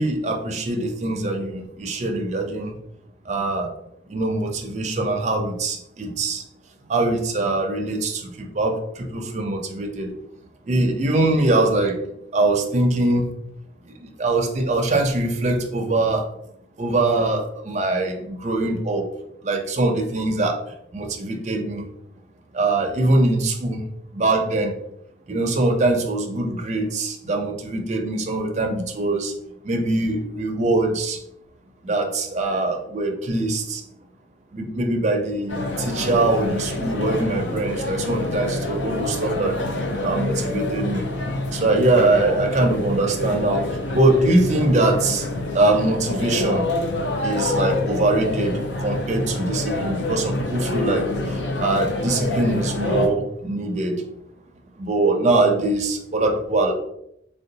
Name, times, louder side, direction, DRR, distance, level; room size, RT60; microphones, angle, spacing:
voice 1, 0.0-2.8 3.3-3.7 4.1-6.4 6.9-10.1 10.7-12.0 12.3-13.3 14.0-16.3 16.8-19.0 19.4-20.6 20.9-21.8 22.5-23.8 24.1-24.7 25.3-29.3 29.6-31.2 31.8-33.8 34.5-39.6 40.0-41.1 41.5-43.6 43.9-45.3 45.5-46.6 47.2-51.1 51.6-54.0 54.8-56.7, right 2 dB, 40° right, 3 dB, 0.4 m, -22 dB
sound 1, 35.5-53.1, left 2 dB, 80° left, 0.5 m, -27 dB
3.6 x 2.2 x 2.6 m, 0.76 s
head